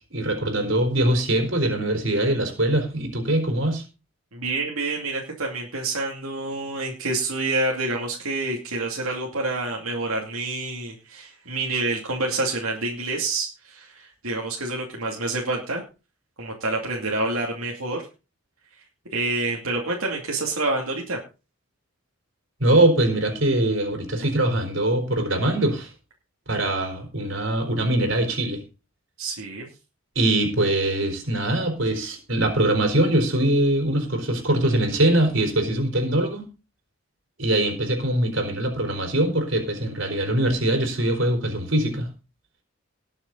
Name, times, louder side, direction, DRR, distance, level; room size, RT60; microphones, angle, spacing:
voice 1, 0.1-3.8 22.6-25.9 26.5-28.6 30.2-36.4 37.4-42.1, right 1 dB, 65° right, 5 dB, 4.2 m, -22 dB
voice 2, 4.3-15.8 16.4-18.0 19.1-21.2 29.2-29.7, right 2 dB, 85° right, -1 dB, 2.6 m, -27 dB
19.5 x 7.1 x 4.0 m, 0.32 s
head